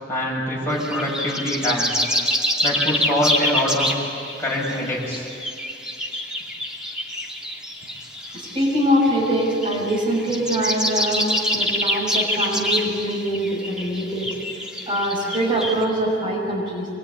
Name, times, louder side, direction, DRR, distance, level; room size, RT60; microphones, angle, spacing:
voice 1, 0.1-2.0 2.6-3.9 4.4-5.3, left 1 dB, 15° left, -5 dB, 7.6 m, -24 dB
sound 1, 0.7-15.8, equal, 5° right, 2.7 m, -26 dB
voice 2, 8.2-14.3 14.9-16.9, equal, 30° right, -3 dB, 6.8 m, -23 dB
26.0 x 22.5 x 9.9 m, 2.4 s
head